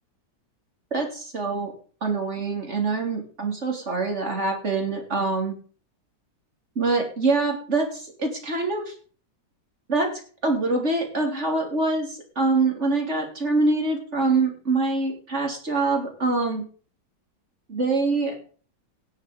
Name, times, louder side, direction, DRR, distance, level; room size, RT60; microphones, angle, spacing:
voice 1, 0.9-1.7 2.0-5.6 6.8-8.9 9.9-10.1 10.4-16.6 17.7-18.3, right 3 dB, 40° right, 1 dB, 3.6 m, -24 dB
18.0 x 6.4 x 5.2 m, 0.42 s
omnidirectional pair, 1.9 m